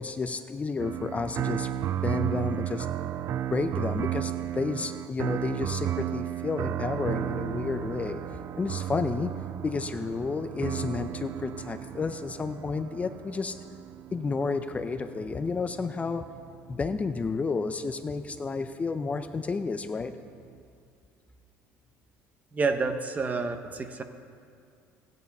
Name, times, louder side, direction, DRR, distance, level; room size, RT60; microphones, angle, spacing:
voice 1, 0.0-1.7 2.0-2.9 3.5-8.2 8.6-9.3 9.6-13.5 14.1-16.2 16.7-20.1, left 4 dB, 25° left, 9 dB, 0.5 m, -31 dB
sound 1, 0.8-17.9 18.7-20.6, right 11 dB, 50° right, 0.4 m, -34 dB
voice 2, 22.5-24.0, right 4 dB, 25° right, 8 dB, 0.9 m, -29 dB
14.0 x 9.4 x 5.4 m, 2.4 s
supercardioid pair, 100°, 6 cm